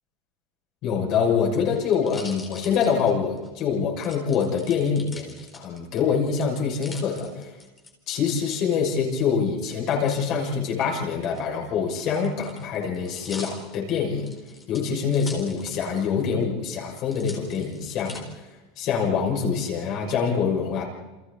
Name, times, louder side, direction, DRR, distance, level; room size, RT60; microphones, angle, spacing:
voice 1, 0.8-7.6 8.1-14.3 14.7-18.3 18.8-20.9, left 6 dB, 40° left, -1 dB, 6.4 m, -25 dB
sound 1, 1.1-3.5 4.0-6.0 6.4-7.9 9.7-10.3 11.2-16.1 16.4-16.5 17.1-18.2 18.8-19.4, left 3 dB, 10° left, 4.2 m, -44 dB
29.5 x 28.0 x 4.2 m, 1.1 s
supercardioid pair, 165°, 0 cm